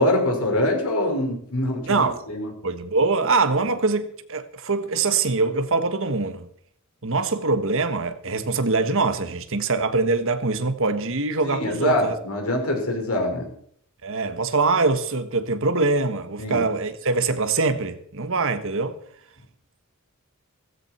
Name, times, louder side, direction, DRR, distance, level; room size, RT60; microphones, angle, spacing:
voice 1, 0.0-2.5 11.4-13.5 16.4-16.6, left 1 dB, 75° left, 5.5 m, -24 dB
voice 2, 2.6-6.5 7.0-12.1 14.0-19.0, right 3 dB, 65° right, 1.5 m, -23 dB
17.0 x 15.0 x 4.5 m
head